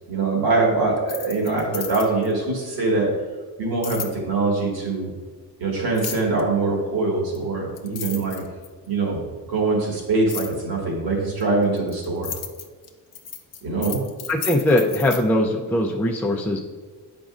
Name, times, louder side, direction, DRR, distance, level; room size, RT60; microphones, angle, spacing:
voice 1, 0.1-3.1 3.6-5.1 5.6-8.4 8.9-9.2 9.5-12.3 13.6-14.0, right 3 dB, 65° right, -2 dB, 1.9 m, -23 dB
sound 1, 1.0-2.3 3.8-4.1 5.9-6.4 7.3-7.4 7.8-8.9 10.3-10.6 11.4-15.2, left 8 dB, 40° left, 0.6 m, -33 dB
voice 2, 14.3-16.6, left 1 dB, 5° left, 0 dB, 0.3 m, -21 dB
9.0 x 5.2 x 2.4 m, 1.5 s
cardioid pair, 150°, 39 cm